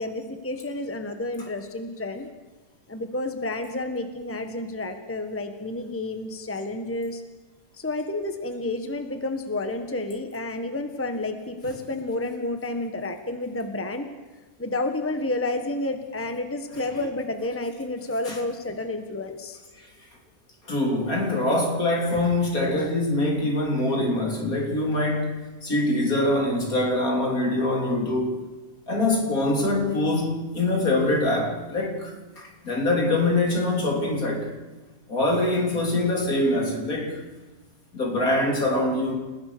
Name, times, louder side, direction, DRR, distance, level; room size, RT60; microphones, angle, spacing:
voice 1, 0.0-2.3 2.9-7.2 7.7-14.1 14.6-19.6, left 2 dB, 10° left, 6 dB, 1.5 m, -30 dB
voice 2, 20.7-25.3 25.6-28.4 28.9-34.5 35.1-37.2 37.9-39.1, left 2 dB, 65° left, 1 dB, 3.8 m, -24 dB
29.5 x 15.5 x 6.9 m, 1.3 s
omnidirectional pair, 1.6 m